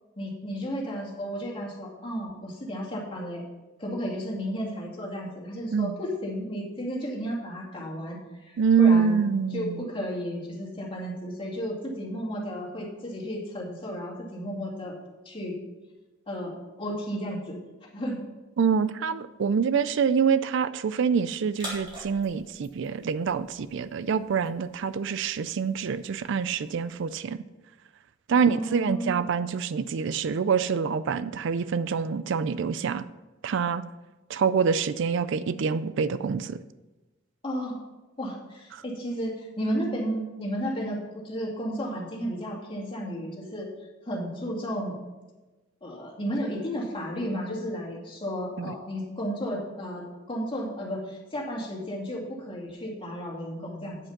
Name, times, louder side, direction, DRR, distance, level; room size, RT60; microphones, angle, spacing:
voice 1, 0.2-3.4 3.8-14.9 15.2-15.6 16.3-16.5 16.8-17.6 17.9-18.2 28.3-29.3 37.4-37.8 38.2-43.7 44.1-45.0 45.8-54.0, equal, 25° left, -3 dB, 2.5 m, -33 dB
voice 2, 8.6-9.8 18.6-27.4 28.3-33.0 33.4-33.8 34.3-36.6 38.7-38.8 48.6-48.7, right 6 dB, 65° right, 14 dB, 0.4 m, -25 dB
sound 1, 21.5-27.2, equal, 25° right, 3.3 m, -46 dB
8.7 x 7.7 x 5.9 m, 1.1 s
head